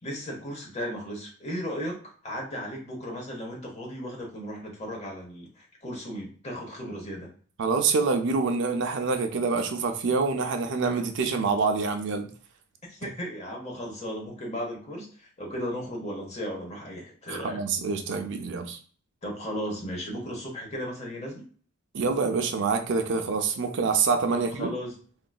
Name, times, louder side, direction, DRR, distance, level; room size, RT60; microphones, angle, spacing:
voice 1, 0.0-7.3 12.9-17.6 19.2-21.4 24.3-24.9, equal, 30° left, 1 dB, 0.9 m, -35 dB
voice 2, 7.6-12.3 13.0-13.1 17.3-18.8 21.9-24.7, right 4 dB, 55° right, 6 dB, 0.5 m, -26 dB
3.8 x 2.5 x 2.3 m, 0.43 s
head